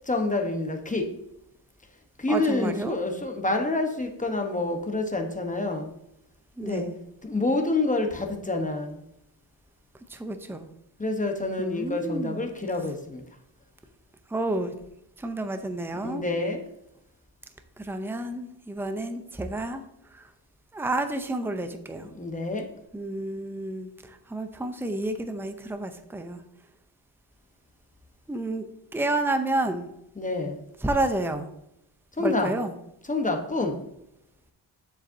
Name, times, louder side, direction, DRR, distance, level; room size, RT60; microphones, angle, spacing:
voice 1, 0.0-1.1 2.2-5.9 6.6-6.8 7.2-9.0 11.0-13.2 16.0-16.6 22.1-22.7 30.2-30.6 32.2-32.5 33.1-33.8, left 2 dB, 20° left, 3 dB, 1.1 m, -27 dB
voice 2, 2.3-3.0 6.6-7.0 10.1-10.7 11.6-12.4 14.3-14.7 15.2-16.3 17.8-19.8 20.1-20.3 20.7-22.1 22.9-26.4 28.3-28.7 28.9-29.9 30.8-31.5 32.2-32.7, right 2 dB, 5° right, 7 dB, 0.6 m, -30 dB
7.3 x 7.0 x 2.7 m, 0.79 s
cardioid pair, 95°, 42 cm